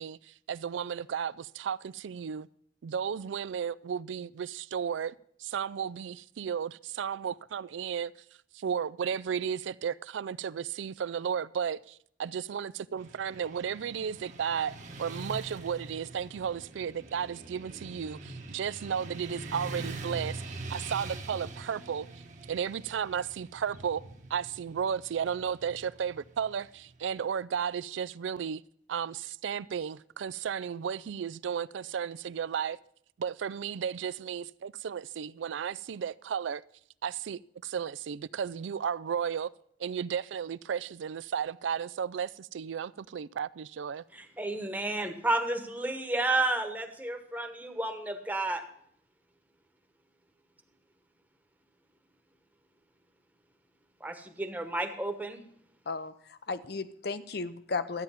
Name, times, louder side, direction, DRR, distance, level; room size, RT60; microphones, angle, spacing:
voice 1, 0.0-2.5 2.8-5.1 5.4-8.1 8.5-22.1 22.5-24.0 24.3-28.6 28.9-32.8 33.2-36.6 37.0-39.5 39.8-44.0, right 7 dB, 90° right, 0.4 m, -34 dB
Motorcycle / Traffic noise roadway noise, 13.0-27.1, right 2 dB, 40° right, 1.2 m, -44 dB
voice 2, 44.1-48.6 54.0-55.4, right 2 dB, 10° right, 1.1 m, -31 dB
voice 3, 55.9-58.0, left 4 dB, 60° left, 0.7 m, -35 dB
13.0 x 9.0 x 5.7 m
head